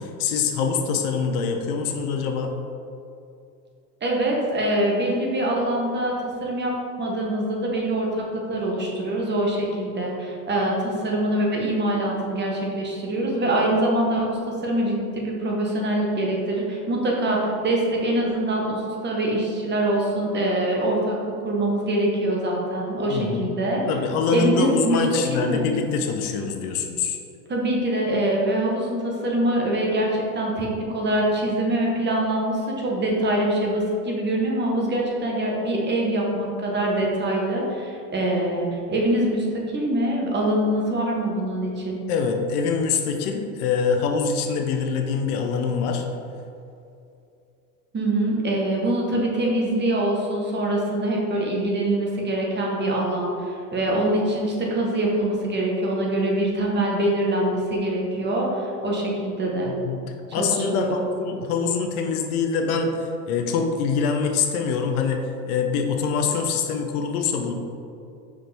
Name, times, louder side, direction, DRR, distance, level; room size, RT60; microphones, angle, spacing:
voice 1, 0.0-2.5 23.1-23.5 23.9-27.2 42.1-46.1 59.7-60.0 60.3-67.5, left 5 dB, 60° left, 4 dB, 0.8 m, -24 dB
voice 2, 4.0-6.2 6.4-6.7 7.0-21.2 21.4-23.8 24.3-25.0 25.3-25.6 27.5-39.5 39.7-42.0 47.9-59.7 60.4-61.0, right 1 dB, 20° right, -2 dB, 1.1 m, -24 dB
5.7 x 4.8 x 3.4 m, 2.6 s
hypercardioid pair, 105°, 49 cm